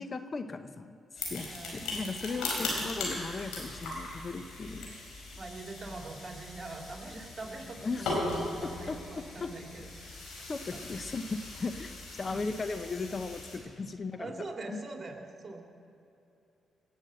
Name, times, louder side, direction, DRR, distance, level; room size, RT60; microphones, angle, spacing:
voice 1, 0.0-5.0 5.2-5.3 7.8-8.2 8.6-9.0 9.4-9.5 10.5-14.3 14.7-14.8, left 3 dB, 40° left, 9 dB, 0.9 m, -37 dB
sound 1, 1.2-13.6, left 2 dB, 75° left, 4.7 m, -39 dB
voice 2, 1.5-1.9 2.5-2.9 5.4-10.1 10.7-10.8 12.3-12.4 14.2-15.6, right 3 dB, 35° right, 2 dB, 2.7 m, -43 dB
19.0 x 8.4 x 7.7 m, 2.8 s
supercardioid pair, 55°, 0 cm